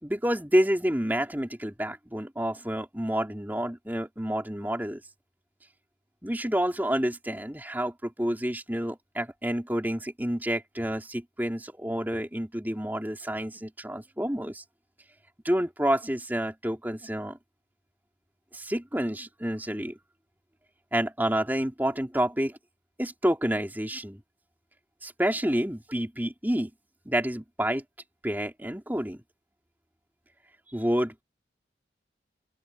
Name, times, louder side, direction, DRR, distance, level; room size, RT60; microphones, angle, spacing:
voice 1, 0.0-5.0 6.2-14.6 15.4-17.4 18.5-20.0 20.9-22.6 23.0-24.2 25.0-26.7 27.0-27.8 28.2-29.2 30.7-31.2, equal, 10° right, 3.3 m, -29 dB
open air
head